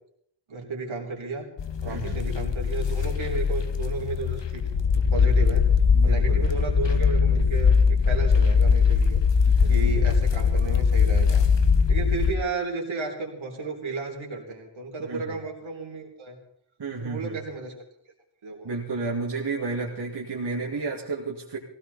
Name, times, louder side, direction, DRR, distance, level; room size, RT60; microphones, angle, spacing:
voice 1, 0.5-1.5 1.8-5.7 6.0-9.2 9.6-11.5 11.9-16.4 17.0-17.7 18.4-18.7, right 3 dB, 80° right, 0 dB, 3.8 m, -33 dB
sound 1, 1.6-12.4, left 5 dB, 65° left, 1.2 m, -21 dB
voice 2, 1.9-2.2 5.9-6.5 9.5-10.0 15.0-15.4 16.8-17.4 18.6-21.6, right 3 dB, 55° right, -4 dB, 2.6 m, -32 dB
19.0 x 16.5 x 4.2 m, 0.69 s
wide cardioid pair, 135°, 47 cm